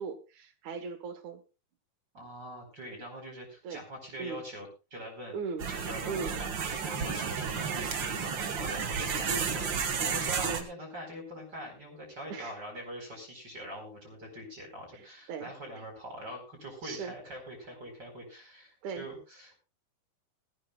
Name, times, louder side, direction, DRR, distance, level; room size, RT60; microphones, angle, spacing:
voice 1, 0.0-1.4 3.6-3.8 4.2-4.4 5.3-5.7 6.1-6.3 9.3-9.5 10.4-10.7 12.3-12.6 14.9-15.9 16.8-17.1 18.8-19.1, right 5 dB, 60° right, 9 dB, 2.5 m, -38 dB
voice 2, 2.1-5.4 5.7-19.6, equal, 25° right, 1 dB, 4.9 m, -43 dB
sound 1, 5.6-10.6, right 6 dB, 80° right, 1.0 m, -32 dB
20.0 x 14.5 x 2.4 m, 0.29 s
omnidirectional pair, 4.2 m